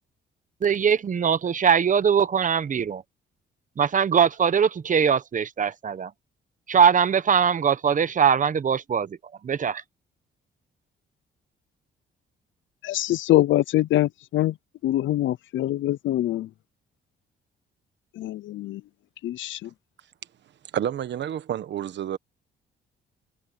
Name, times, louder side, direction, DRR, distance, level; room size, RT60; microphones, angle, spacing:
voice 1, 0.6-3.0 3.8-6.1 6.7-9.2 9.4-9.8, right 7 dB, 40° right, 1.1 m, -21 dB
voice 2, 12.8-14.5 14.8-16.5 18.2-18.8 19.2-19.7, left 14 dB, 75° left, 0.7 m, -24 dB
voice 3, 20.7-22.2, right 10 dB, 65° right, 1.3 m, -29 dB
cardioid pair, 90°, 20 cm